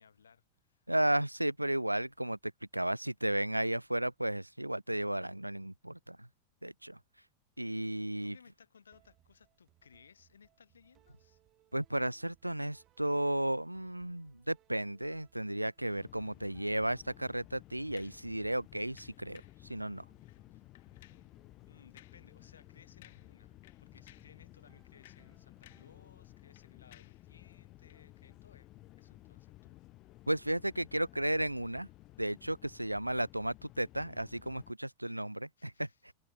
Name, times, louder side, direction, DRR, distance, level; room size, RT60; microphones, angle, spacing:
voice 1, 0.0-0.9 8.2-11.4 20.5-20.7 21.6-28.7 29.0-29.8 35.6-36.1, left 6 dB, 70° left, 6.1 m, -62 dB
voice 2, 0.9-2.4 2.7-6.3 6.6-7.0 7.6-8.4 11.7-20.0 30.3-31.9 32.2-36.1, right 1 dB, 85° right, 0.7 m, -34 dB
sound 1, 8.9-26.7, right 14 dB, 35° right, 3.9 m, -70 dB
sound 2, 15.9-34.7, left 18 dB, 35° left, 1.3 m, -56 dB
sound 3, 18.0-18.3 19.0-19.6 20.2-20.4 20.7-21.3 22.0-22.3 22.6-22.7 23.0-23.4 23.6-24.4 24.8-26.0 26.2-27.3 27.9-28.0, left 16 dB, 55° left, 4.5 m, -61 dB
figure-of-eight pair, 90°, 0 cm